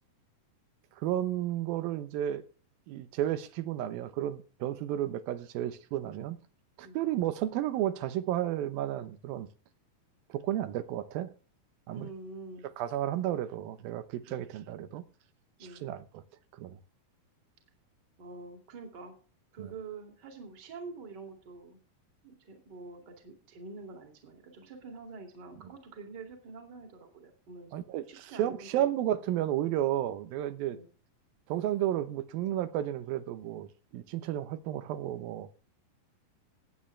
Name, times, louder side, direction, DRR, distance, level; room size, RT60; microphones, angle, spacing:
voice 1, 1.0-2.4 2.9-6.4 6.8-9.5 10.3-11.3 11.9-12.1 12.8-15.0 15.8-16.2 16.6-16.8 19.6-19.7 27.7-30.8 31.5-33.7 33.9-35.5, right 12 dB, 85° right, 2.7 m, -32 dB
voice 2, 11.9-12.7 14.3-14.5 15.6-15.9 18.2-19.1 19.5-21.8 22.2-28.9 30.7-30.9, right 3 dB, 30° right, 2.6 m, -46 dB
18.0 x 8.8 x 3.3 m
omnidirectional pair, 4.1 m